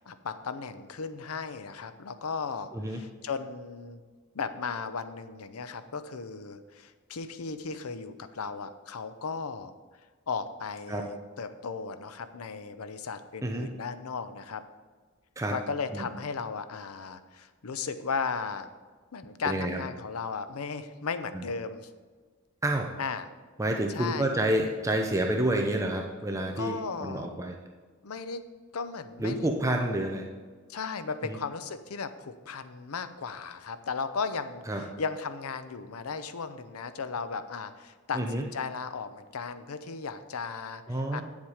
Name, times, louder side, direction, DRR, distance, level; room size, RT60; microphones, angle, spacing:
voice 1, 0.0-4.0 4.3-9.7 10.3-14.6 15.5-18.7 19.1-21.9 23.0-23.3 23.9-24.3 26.6-27.3 28.0-28.4 28.7-29.5 30.7-34.6 35.0-40.8 41.1-41.2, left 5 dB, 90° left, 11 dB, 0.6 m, -36 dB
voice 2, 19.4-19.8 21.3-21.4 22.6-22.9 23.6-27.6 29.2-30.3 31.2-31.4 34.7-34.8 38.1-38.4 40.9-41.2, right 1 dB, 15° right, 2 dB, 0.6 m, -29 dB
9.0 x 7.3 x 4.9 m, 1.5 s
head